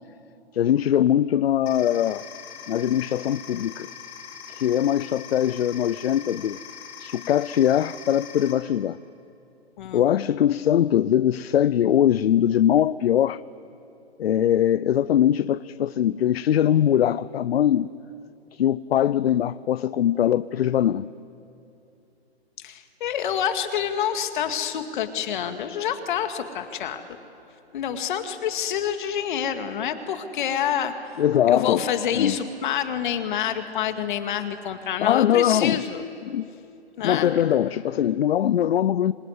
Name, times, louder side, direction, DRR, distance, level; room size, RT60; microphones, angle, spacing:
voice 1, 0.5-2.2 2.7-3.9 4.5-6.6 7.0-9.0 9.9-13.4 14.2-17.9 18.5-21.1 31.2-31.9 32.1-32.4 35.0-35.8 36.3-36.5 37.0-39.1, left 10 dB, 65° left, 18 dB, 0.6 m, -21 dB
sound 1, 1.7-8.5, left 8 dB, 25° left, 6.4 m, -41 dB
voice 2, 22.6-27.0 27.7-30.9 31.5-36.0 37.0-37.4, left 9 dB, 50° left, 8 dB, 2.2 m, -27 dB
26.5 x 20.5 x 9.6 m, 2.8 s
hypercardioid pair, 145°, 33 cm